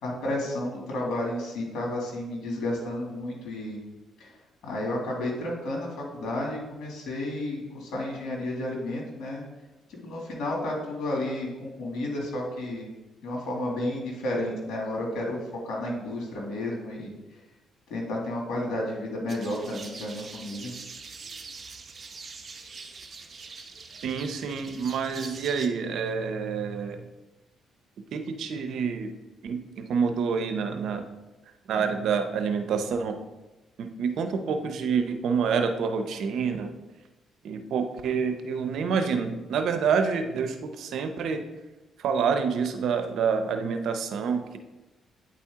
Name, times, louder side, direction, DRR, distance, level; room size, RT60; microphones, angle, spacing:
voice 1, 0.0-3.8 4.2-4.3 4.6-9.4 9.9-12.9 13.2-17.1 17.9-20.7, left 1 dB, 75° left, -1 dB, 2.2 m, -32 dB
sound 1, 19.3-25.7, right 4 dB, 40° right, 0.7 m, -43 dB
voice 2, 24.0-27.0 28.1-29.1 29.4-31.1 31.7-33.2 33.8-36.7 37.4-41.4 42.0-44.6, right 6 dB, 75° right, 7 dB, 0.7 m, -27 dB
8.9 x 4.3 x 3.6 m, 1.1 s
cardioid pair, 90°, 0 cm